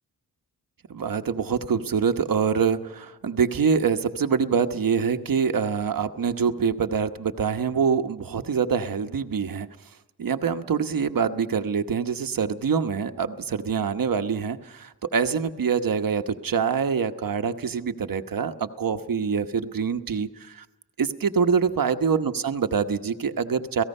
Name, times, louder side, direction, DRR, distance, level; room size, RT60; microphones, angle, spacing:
voice 1, 0.9-9.7 10.2-20.6 21.0-23.8, right 6 dB, 60° right, 8 dB, 1.1 m, -25 dB
30.0 x 18.0 x 5.5 m, 1.1 s
wide cardioid pair, 135°, 39 cm